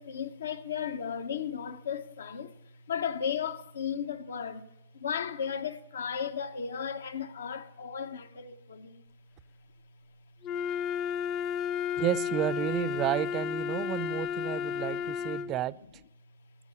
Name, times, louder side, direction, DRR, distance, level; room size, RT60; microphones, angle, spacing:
voice 1, 0.0-9.0 13.8-13.9 14.4-14.9 15.2-15.3, left 7 dB, 85° left, 1.1 m, -35 dB
Wind instrument woodwind instrument, 10.4-15.6, left 8 dB, 30° left, 0.5 m, -32 dB
voice 2, 12.0-15.7, right 13 dB, 30° right, 0.4 m, -31 dB
12.0 x 8.9 x 8.4 m
hypercardioid pair, 140°, 0 cm